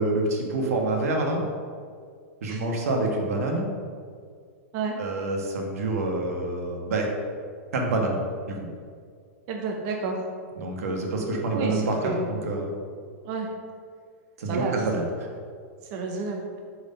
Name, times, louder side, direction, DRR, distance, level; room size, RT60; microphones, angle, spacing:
voice 1, 0.0-1.4 2.4-3.7 5.0-7.1 7.7-8.2 8.5-8.6 10.6-12.7 14.4-15.0, right 2 dB, 80° right, 1 dB, 1.4 m, -27 dB
voice 2, 9.5-10.2 11.5-12.4 13.2-13.5 14.4-14.8 15.9-16.6, right 4 dB, 35° right, 0 dB, 0.7 m, -30 dB
5.4 x 4.7 x 5.2 m, 2.1 s
supercardioid pair, 170°, 8 cm